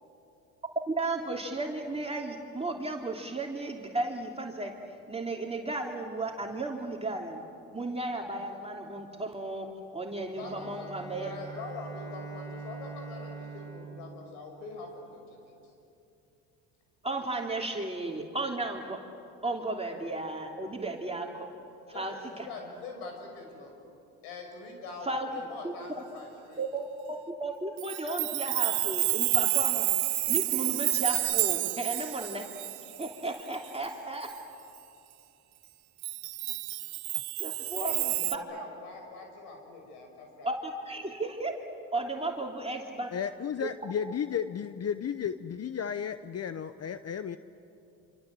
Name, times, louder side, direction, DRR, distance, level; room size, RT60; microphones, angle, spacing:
voice 1, 0.9-4.7 5.1-7.4 7.7-11.3 17.0-19.0 19.4-21.5 21.9-22.5 25.0-25.3 25.6-25.7 26.6-29.9 30.3-32.5 33.0-34.4 37.4-38.4 40.4-41.6 41.9-43.1 43.6-43.7, right 2 dB, 15° right, 0 dB, 3.0 m, -34 dB
voice 2, 10.3-10.9 11.2-15.4 21.9-23.7 24.2-26.6 37.8-40.5, left 3 dB, 80° left, 3 dB, 6.2 m, -43 dB
Bowed string instrument, 10.3-15.2, right 4 dB, 10° left, 5.0 m, -44 dB
Chime, 27.8-33.9 34.3-34.4 36.0-38.4, right 22 dB, 90° right, 0.7 m, -29 dB
voice 3, 43.1-47.4, left 8 dB, 35° left, 12 dB, 0.9 m, -33 dB
27.0 x 26.0 x 7.7 m, 2.7 s
hypercardioid pair, 65°, 42 cm